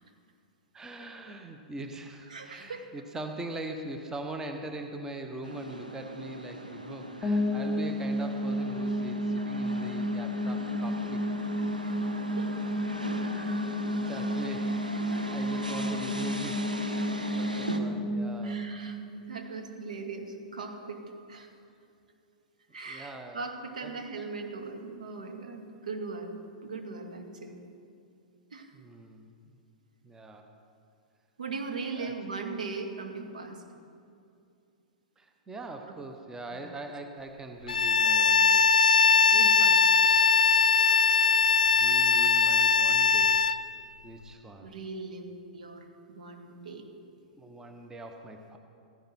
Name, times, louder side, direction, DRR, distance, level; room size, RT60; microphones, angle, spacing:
voice 1, 0.7-11.2 13.2-18.6 22.9-23.4 23.8-23.9 28.7-29.6 30.0-30.5 32.0-32.1 35.2-38.7 41.7-43.4 44.0-44.7 47.4-48.6, right 2 dB, 10° right, 5 dB, 1.1 m, -42 dB
voice 2, 2.3-2.9 11.8-12.5 18.4-19.0 19.3-21.5 22.7-27.6 28.5-28.7 31.4-33.6 36.5-36.7 39.3-39.8 44.6-46.9, right 4 dB, 70° right, 4 dB, 1.9 m, -39 dB
sound 1, 5.4-17.8, right 1 dB, 90° right, 1.1 m, -39 dB
sound 2, 7.2-20.1, equal, 10° left, 2.2 m, -32 dB
Bowed string instrument, 37.7-43.6, left 5 dB, 75° left, 0.5 m, -21 dB
15.5 x 15.0 x 4.5 m, 2.5 s
figure-of-eight pair, 100°, 4 cm